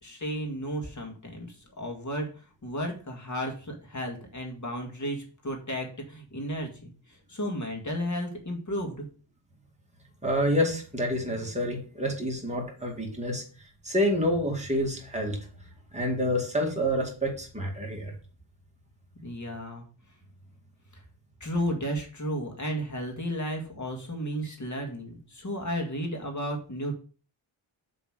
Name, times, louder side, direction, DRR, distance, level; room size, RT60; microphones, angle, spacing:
voice 1, 0.0-9.1 19.2-19.8 20.9-21.0 21.4-26.9, equal, 35° left, 2 dB, 2.1 m, -33 dB
voice 2, 10.2-13.4 13.8-15.4 15.9-18.1, equal, 15° right, -1 dB, 2.3 m, -28 dB
7.2 x 3.9 x 6.4 m, 0.39 s
wide cardioid pair, 135°, 50 cm